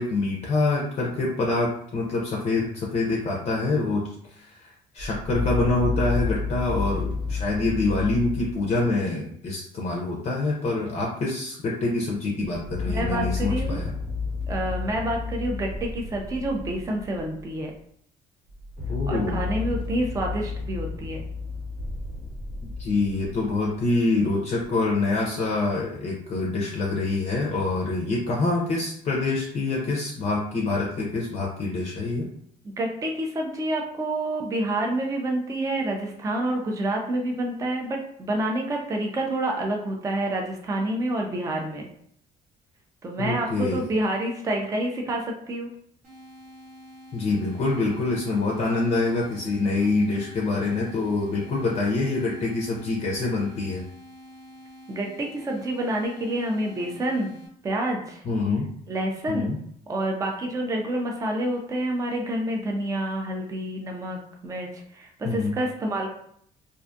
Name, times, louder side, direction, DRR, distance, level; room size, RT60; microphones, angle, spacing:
voice 1, 0.0-13.9 18.9-19.4 22.6-32.3 43.2-43.8 47.1-53.8 58.2-58.7 59.3-59.6 65.2-65.6, left 3 dB, 40° left, -2 dB, 0.5 m, -26 dB
sound 1, 5.0-8.8 12.4-17.8 18.5-23.8 24.6-24.7, left 4 dB, 75° right, 1.3 m, -31 dB
voice 2, 12.9-13.8 14.5-17.7 19.1-21.3 32.8-41.9 43.0-45.7 54.9-57.3 57.6-58.2 58.9-59.5 59.9-66.1, right 1 dB, 20° right, 1 dB, 0.4 m, -28 dB
sound 2, 46.0-57.5, equal, 50° right, 1.0 m, -47 dB
2.5 x 2.3 x 2.5 m, 0.66 s
cardioid pair, 110°, 17 cm